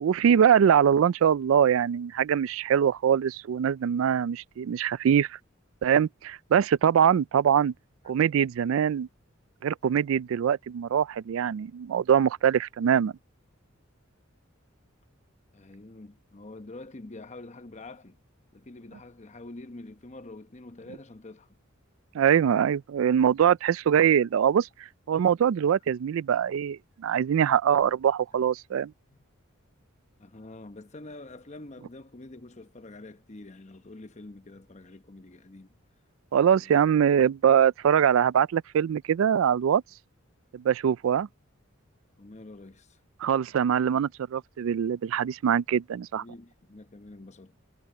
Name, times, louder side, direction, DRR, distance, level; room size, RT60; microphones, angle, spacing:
voice 1, 0.0-5.4 5.8-7.7 8.1-9.1 9.6-13.1 22.1-24.7 25.1-28.9 36.3-39.8 40.5-41.3 43.2-46.2, right 8 dB, 75° right, 0.3 m, -23 dB
voice 2, 15.5-18.2 18.5-21.6 29.1-29.2 30.2-35.8 36.5-36.8 42.2-43.0 43.9-44.0 46.1-47.6, left 2 dB, 35° left, 0.9 m, -46 dB
head